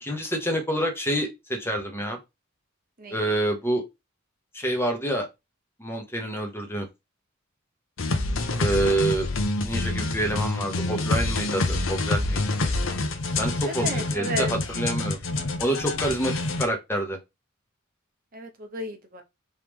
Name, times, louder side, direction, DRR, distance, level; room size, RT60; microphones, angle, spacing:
voice 1, 0.0-2.2 3.1-3.8 4.5-5.3 5.8-6.9 8.6-9.3 9.6-12.7 13.4-15.2 15.6-17.2, right 1 dB, 10° left, 1.0 m, -27 dB
sound 1, 8.0-16.6, left 2 dB, 70° left, 0.8 m, -27 dB
voice 2, 13.6-14.5 18.3-19.2, equal, 45° right, 0.8 m, -33 dB
4.6 x 3.2 x 3.6 m
head